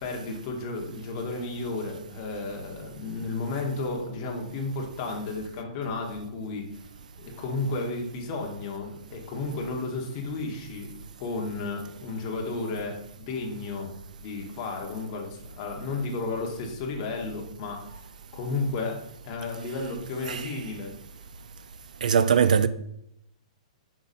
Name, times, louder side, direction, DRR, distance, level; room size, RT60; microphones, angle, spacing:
voice 1, 0.0-6.7 7.2-10.9 11.2-13.9 14.2-18.1 18.3-19.0 19.2-20.9, left 3 dB, 25° left, 1.0 m, -33 dB
voice 2, 22.0-22.7, right 7 dB, 85° right, 0.4 m, -21 dB
5.6 x 5.1 x 4.1 m
hypercardioid pair, 175°, 4 cm